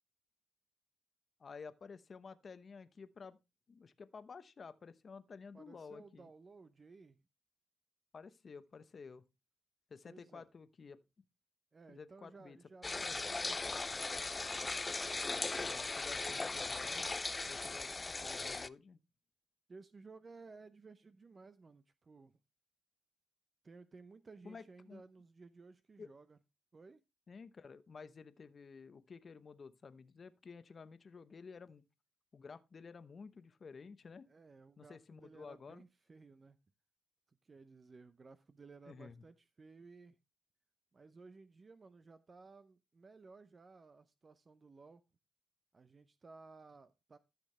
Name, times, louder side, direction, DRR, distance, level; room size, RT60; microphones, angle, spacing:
voice 1, 1.4-3.4 3.7-6.3 8.1-9.2 9.9-11.0 11.9-12.6 13.0-13.2 15.6-17.1 17.5-17.9 18.2-19.0 24.4-25.0 26.0-26.1 27.3-31.8 32.3-34.3 34.8-35.8 38.9-39.2, left 5 dB, 40° left, 0.8 m, -52 dB
voice 2, 5.5-7.2 10.1-10.5 11.7-14.5 19.7-22.4 23.6-26.4 26.7-27.0 34.3-36.6 37.3-40.2 40.9-45.0 45.7-47.2, right 4 dB, 35° right, 0.7 m, -57 dB
sound 1, 12.8-18.7, left 3 dB, 25° left, 0.4 m, -38 dB
13.5 x 6.3 x 3.2 m
cardioid pair, 90°, 0 cm